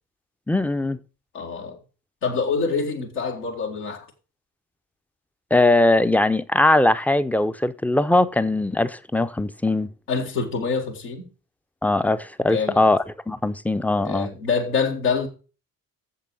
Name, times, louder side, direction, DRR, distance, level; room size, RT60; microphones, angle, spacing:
voice 1, 0.5-1.0 5.5-9.9 11.8-14.3, left 2 dB, 5° left, 0.6 m, -20 dB
voice 2, 1.3-1.8 2.2-4.1 10.1-11.2 12.5-12.8 14.0-15.3, left 5 dB, 80° left, 2.0 m, -25 dB
7.5 x 7.5 x 6.9 m
figure-of-eight pair, 45°, 45 cm